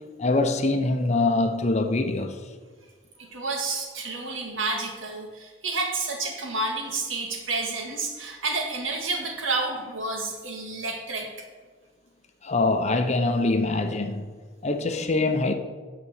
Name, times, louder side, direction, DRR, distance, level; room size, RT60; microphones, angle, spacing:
voice 1, 0.2-2.4 12.4-14.2 14.6-15.5, left 2 dB, 35° left, 0.8 m, -24 dB
voice 2, 3.2-11.5, right 3 dB, 85° right, 2.0 m, -30 dB
9.5 x 6.1 x 7.1 m
head